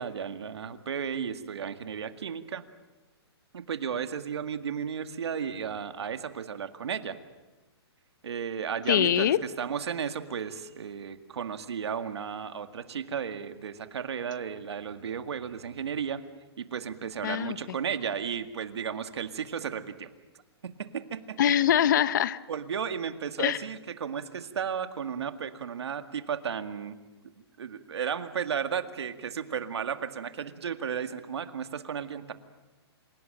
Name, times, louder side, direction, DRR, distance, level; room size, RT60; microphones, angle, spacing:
voice 1, 0.0-2.6 3.5-7.2 8.2-16.2 16.6-20.1 20.6-21.4 22.5-27.0 27.6-32.3, right 7 dB, 75° right, 8 dB, 2.0 m, -34 dB
voice 2, 8.9-9.4 17.2-17.6 21.4-22.4 23.4-23.6, left 10 dB, 45° left, 17 dB, 0.8 m, -23 dB
27.0 x 17.5 x 8.9 m, 1.1 s
hypercardioid pair, 165°, 14 cm